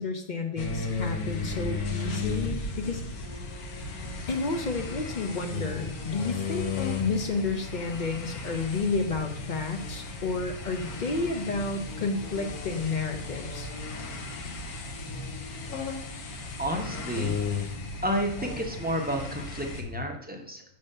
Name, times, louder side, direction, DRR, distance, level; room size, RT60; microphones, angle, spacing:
voice 1, 0.0-3.0 4.3-6.7 7.0-13.7, left 3 dB, 50° left, 6 dB, 0.5 m, -31 dB
sound 1, 0.6-19.8, left 3 dB, 85° left, 1.4 m, -35 dB
voice 2, 16.6-17.7 18.0-20.6, equal, 15° right, 1 dB, 0.4 m, -31 dB
6.8 x 3.4 x 5.4 m, 0.68 s
omnidirectional pair, 1.5 m